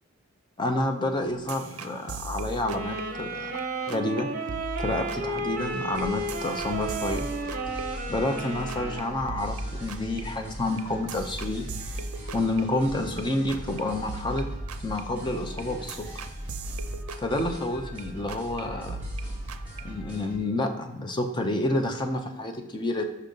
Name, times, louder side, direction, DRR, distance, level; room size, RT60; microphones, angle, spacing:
voice 1, 0.6-3.5 3.9-4.3 4.8-7.3 8.1-11.7 12.3-14.5 14.8-16.1 17.2-19.0 19.8-23.0, left 1 dB, 20° left, 4 dB, 0.5 m, -29 dB
sound 1, 1.5-3.6 3.9-4.2 4.5-8.4 8.7-9.0 9.3-13.2 13.5-13.8 14.1-18.0 18.3-18.6 18.9-20.1, right 2 dB, 80° right, 0.5 m, -39 dB
sound 2, 2.7-9.2, right 2 dB, 40° right, 0.9 m, -33 dB
Flux Rocker, 5.6-20.4, equal, 5° right, 2.2 m, -40 dB
5.5 x 3.7 x 5.3 m, 0.97 s
head